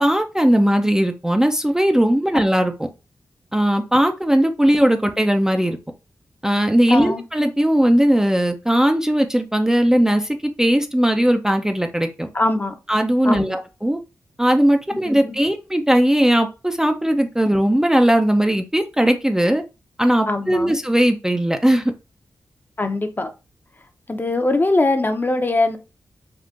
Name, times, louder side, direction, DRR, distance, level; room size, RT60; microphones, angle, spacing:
voice 1, 0.0-2.7 3.5-5.8 6.4-12.3 12.9-14.0 14.4-19.6 20.0-21.9, equal, 10° right, 0.4 m, -18 dB
voice 2, 6.9-7.2 12.3-12.7 13.2-13.6 15.0-15.4 20.3-20.7 22.8-23.3 24.1-25.8, left 2 dB, 30° left, 0.6 m, -21 dB
3.7 x 2.5 x 2.4 m
supercardioid pair, 40°, 6 cm